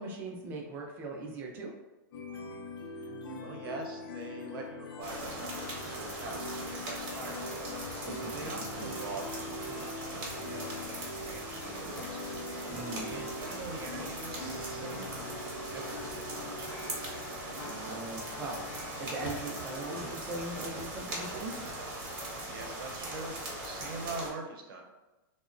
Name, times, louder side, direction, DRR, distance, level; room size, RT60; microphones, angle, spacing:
voice 1, 0.0-1.7 8.0-8.4 12.7-13.2 17.7-21.7, right 2 dB, 15° right, 0 dB, 0.3 m, -40 dB
sound 1, 2.1-20.1, left 2 dB, 80° left, 0.4 m, -43 dB
voice 2, 3.4-7.5 8.3-12.2 13.0-15.1 15.6-17.0 22.5-24.8, right 3 dB, 85° right, 1 dB, 0.6 m, -44 dB
sound 2, 5.0-24.3, right 1 dB, 35° right, 0.7 m, -40 dB
2.8 x 2.0 x 2.5 m, 1.1 s
supercardioid pair, 175°, 12 cm